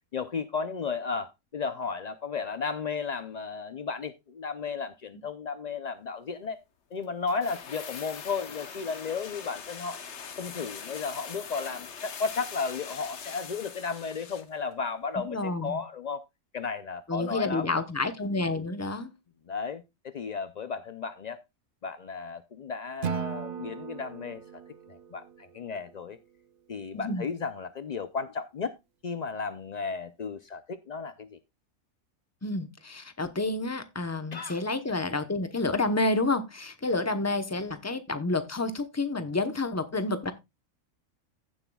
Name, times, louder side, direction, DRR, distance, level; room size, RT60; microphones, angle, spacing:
voice 1, 0.1-6.6 6.9-10.0 10.3-16.2 16.5-17.8 19.5-21.4 21.8-24.6 24.9-26.2 26.7-28.7 29.0-31.4 34.3-34.6, left 5 dB, 70° left, 0.4 m, -34 dB
sound 1, 7.3-14.6 14.8-14.9, left 6 dB, 55° left, 1.2 m, -42 dB
voice 2, 15.2-15.8 17.1-19.1 26.9-27.3 32.4-40.3, left 2 dB, 15° left, 0.7 m, -29 dB
Acoustic guitar / Strum, 23.0-26.2, right 7 dB, 55° right, 0.6 m, -37 dB
15.5 x 7.4 x 2.3 m
omnidirectional pair, 1.5 m